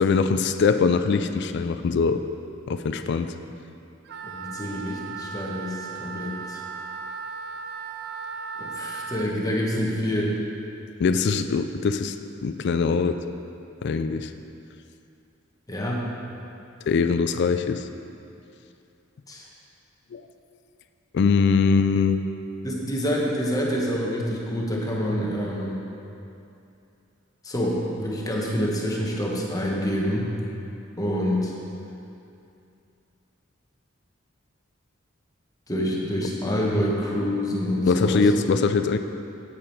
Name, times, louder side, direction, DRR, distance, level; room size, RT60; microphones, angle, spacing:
voice 1, 0.0-2.2 2.7-3.3 11.0-12.2 12.4-13.2 13.8-14.3 16.9-17.9 20.1-20.2 21.1-22.3 37.8-39.0, left 5 dB, 60° left, 9 dB, 0.4 m, -22 dB
Wind instrument woodwind instrument, 4.0-9.3, right 5 dB, 55° right, 0.4 m, -36 dB
voice 2, 4.3-6.6 8.6-10.3 15.7-16.0 19.3-19.5 22.6-25.8 27.4-30.3 31.0-31.5 35.7-38.3, equal, 20° left, -3 dB, 1.2 m, -27 dB
8.7 x 8.6 x 4.5 m, 2.6 s
head